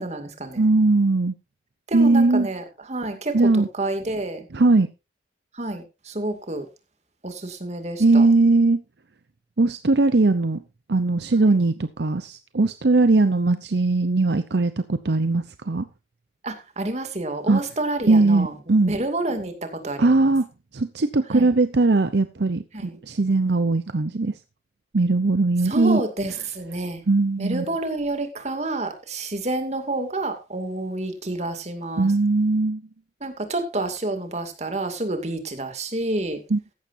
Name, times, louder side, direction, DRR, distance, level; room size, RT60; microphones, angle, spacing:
voice 1, 0.0-0.7 1.9-3.4 3.7-4.5 5.5-6.7 7.2-8.3 16.4-18.5 18.8-19.5 19.8-20.3 21.3-21.5 22.7-23.0 25.6-27.0 27.4-32.1 33.2-36.4, right 2 dB, 40° right, 2.4 m, -29 dB
voice 2, 0.6-1.3 1.9-2.5 3.3-3.7 4.5-4.9 8.0-8.8 9.6-10.6 10.9-15.9 17.5-17.6 18.1-18.9 20.0-20.5 20.7-24.3 24.9-26.0 27.1-27.7 32.0-32.8 36.5-36.6, right 3 dB, 70° right, 0.7 m, -19 dB
15.0 x 11.5 x 2.7 m
head